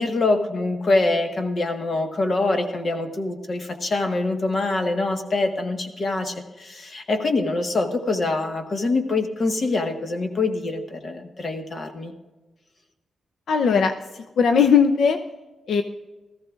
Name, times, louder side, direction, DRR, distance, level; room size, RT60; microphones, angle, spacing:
voice 1, 0.0-12.1, left 2 dB, 40° left, 5 dB, 1.4 m, -24 dB
voice 2, 13.5-15.2 15.7-15.8, left 6 dB, 80° left, 7 dB, 0.6 m, -19 dB
17.5 x 14.5 x 2.5 m, 1.2 s
wide cardioid pair, 125°, 0 cm